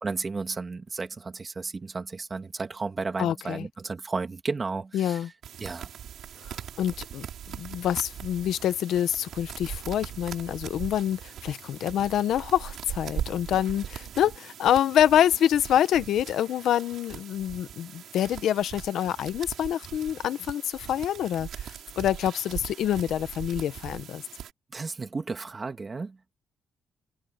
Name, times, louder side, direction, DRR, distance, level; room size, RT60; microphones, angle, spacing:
voice 1, 0.0-5.2 5.6-5.9 24.7-26.2, right 4 dB, 30° right, 2.7 m, -33 dB
voice 2, 3.2-3.7 4.9-5.3 6.4-7.2 7.5-24.2, left 10 dB, 80° left, 1.1 m, -26 dB
sound 1, 5.4-24.5, right 9 dB, 70° right, 4.9 m, -40 dB
cardioid pair, 120°, 0 cm